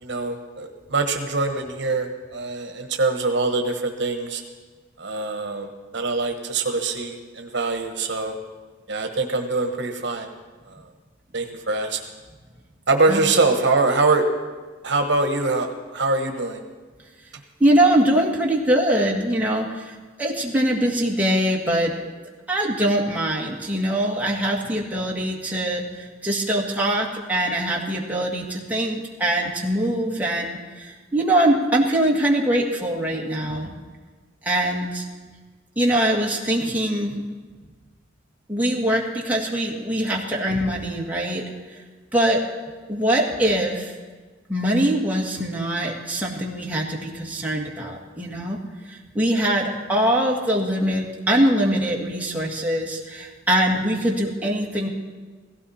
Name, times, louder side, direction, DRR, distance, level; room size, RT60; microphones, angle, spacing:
voice 1, 0.0-4.4 5.0-8.3 8.9-10.3 10.7-10.8 11.3-12.0 12.9-14.2 14.8-15.7 15.9-16.6, right 3 dB, 65° right, 5 dB, 1.3 m, -23 dB
voice 2, 17.6-22.0 22.5-33.8 34.4-35.1 35.8-37.1 38.5-41.4 41.7-41.8 42.1-42.4 42.9-44.0 44.5-48.6 48.9-54.9, right 1 dB, 10° right, -2 dB, 1.9 m, -23 dB
17.0 x 15.5 x 4.3 m, 1.4 s
head